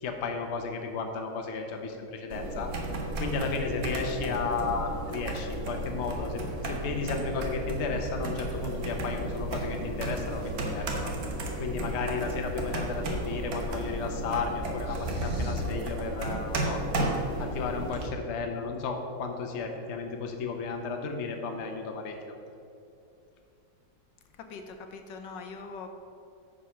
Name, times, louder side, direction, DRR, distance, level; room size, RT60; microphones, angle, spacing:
voice 1, 0.0-2.7 3.2-11.1 11.6-16.8 17.4-22.1, left 4 dB, 50° left, 4 dB, 0.9 m, -33 dB
sound 1, 2.3-18.1, right 1 dB, 55° right, 1.4 m, -33 dB
sound 2, 8.5-14.3, equal, 35° left, 1.6 m, -47 dB
sound 3, 14.8-15.7, right 1 dB, 80° right, 2.9 m, -32 dB
voice 2, 24.3-25.9, left 4 dB, 80° left, 6 dB, 1.4 m, -42 dB
9.4 x 5.1 x 5.7 m, 2.6 s
omnidirectional pair, 1.9 m